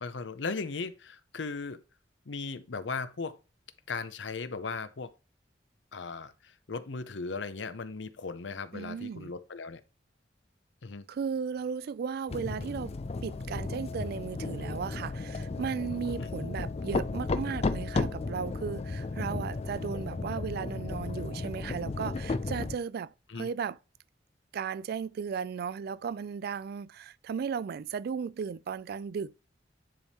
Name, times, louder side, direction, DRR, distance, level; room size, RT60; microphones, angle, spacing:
voice 1, 0.0-1.8 2.3-3.4 3.9-5.1 5.9-9.8 10.8-11.0 16.2-16.3 23.3-23.5, left 4 dB, 85° left, 0.7 m, -37 dB
voice 2, 8.7-9.3 11.1-12.9 13.2-23.8 24.5-29.4, right 6 dB, 60° right, 0.3 m, -35 dB
sound 1, 12.3-22.8, left 3 dB, 35° left, 0.4 m, -34 dB
10.0 x 3.5 x 4.2 m
head